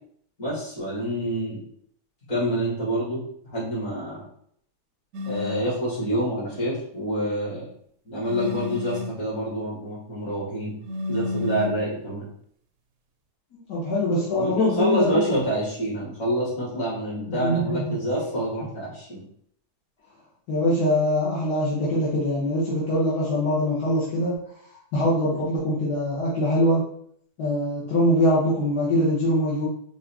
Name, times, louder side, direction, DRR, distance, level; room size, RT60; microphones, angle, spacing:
voice 1, 0.4-1.6 2.3-3.2 3.5-4.2 5.2-7.7 8.1-10.8 11.1-12.3 14.3-19.2, right 1 dB, 50° left, -7 dB, 2.6 m, -27 dB
sound 1, 5.1-5.7 8.3-9.2 10.8-11.9, left 4 dB, 70° right, 0.9 m, -31 dB
voice 2, 13.5-15.3 17.2-18.0 20.5-24.3 24.9-26.8 27.4-29.7, left 1 dB, 75° left, -7 dB, 1.7 m, -23 dB
5.4 x 2.7 x 3.5 m, 0.66 s
omnidirectional pair, 1.7 m